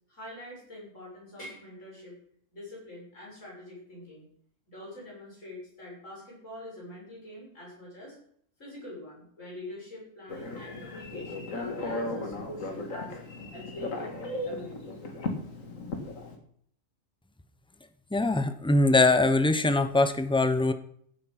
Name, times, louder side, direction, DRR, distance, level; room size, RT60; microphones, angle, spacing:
voice 1, 0.1-2.1 2.5-4.3 4.7-8.2 8.6-13.2 13.5-14.1 14.4-15.0, left 1 dB, 75° left, -4 dB, 7.6 m, -44 dB
Telephone, 10.3-16.4, left 2 dB, 90° left, 2.3 m, -36 dB
voice 2, 18.1-20.7, left 2 dB, 5° left, 10 dB, 0.7 m, -22 dB
15.5 x 8.5 x 5.9 m, 0.63 s
omnidirectional pair, 1.3 m